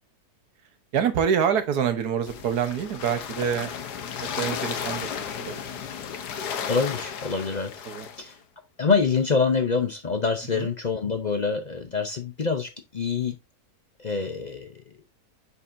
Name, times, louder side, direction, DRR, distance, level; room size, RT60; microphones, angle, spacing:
voice 1, 0.9-3.7 4.2-5.1 5.4-5.8 7.8-8.1 10.5-10.7, right 8 dB, 75° right, 1.6 m, -26 dB
sound 1, 2.3-8.3, left 7 dB, 90° left, 1.5 m, -34 dB
voice 2, 6.7-7.7 8.2-8.4 8.8-13.4 14.0-14.8, left 5 dB, 45° left, 0.5 m, -26 dB
6.8 x 5.5 x 2.6 m
omnidirectional pair, 1.7 m